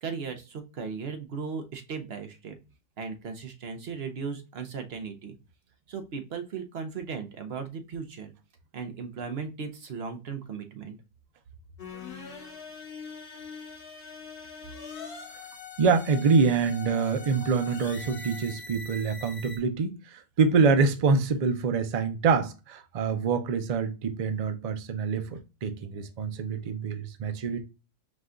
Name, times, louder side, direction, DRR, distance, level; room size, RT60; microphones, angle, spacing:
voice 1, 0.0-2.6 3.0-5.3 5.9-8.3 8.7-11.0, right 5 dB, 55° right, 0.9 m, -37 dB
sound 1, 11.8-19.6, left 5 dB, 45° left, 1.2 m, -42 dB
voice 2, 15.8-27.6, right 5 dB, 75° right, 0.3 m, -25 dB
5.0 x 2.3 x 3.7 m
omnidirectional pair, 1.4 m